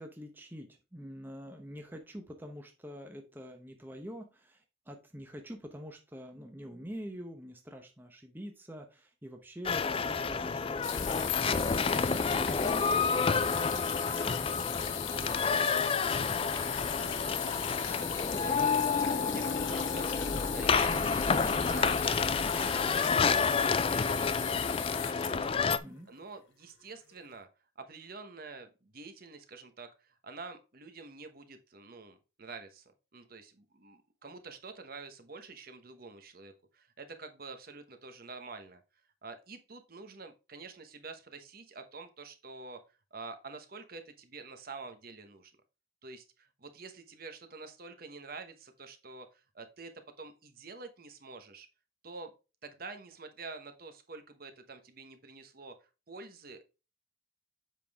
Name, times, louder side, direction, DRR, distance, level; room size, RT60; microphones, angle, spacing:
voice 1, 0.0-14.5 15.1-15.7 25.7-26.1, equal, 10° right, 4 dB, 0.8 m, -46 dB
sound 1, 9.6-25.8, left 5 dB, 30° left, 0.3 m, -29 dB
sound 2, 10.8-26.2 27.1-27.2, left 9 dB, 75° left, 1.0 m, -38 dB
voice 2, 16.8-25.7 26.1-27.5 27.8-38.8 39.2-45.5 46.0-51.7 52.0-52.3 52.6-56.7, right 4 dB, 45° right, 8 dB, 1.1 m, -48 dB
7.5 x 5.3 x 3.5 m, 0.30 s
head